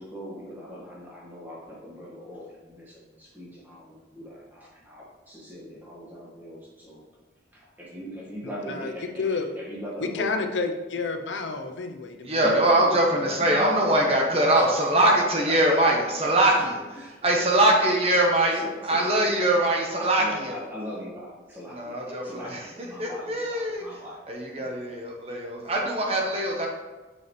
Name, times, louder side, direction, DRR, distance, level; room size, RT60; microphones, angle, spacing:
voice 1, 0.0-7.0 7.5-10.3 12.4-15.2 15.5-16.7 16.9-18.2 18.5-24.2 24.5-24.7, equal, 10° right, -6 dB, 1.8 m, -40 dB
voice 2, 8.4-9.5 10.0-12.7, left 4 dB, 90° left, 6 dB, 0.7 m, -30 dB
voice 3, 12.2-16.7 17.2-20.6 21.7-22.6 23.0-23.8 24.3-26.7, right 1 dB, 35° right, 0 dB, 1.0 m, -22 dB
6.9 x 5.5 x 3.2 m, 1.2 s
head